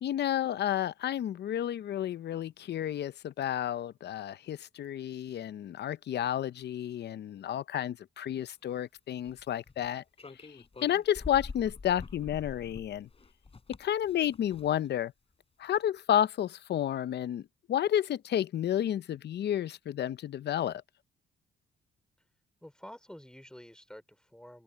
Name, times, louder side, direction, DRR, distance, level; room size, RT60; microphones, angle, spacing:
voice 1, 0.0-10.0 10.8-13.1 13.8-15.1 15.6-17.4 17.7-20.8, left 11 dB, 60° left, 0.7 m, -31 dB
sound 1, 9.2-9.9 10.2-14.9, left 4 dB, 30° left, 4.4 m, -45 dB
voice 2, 22.6-24.6, equal, 5° left, 4.0 m, -49 dB
cardioid pair, 90°, 20 cm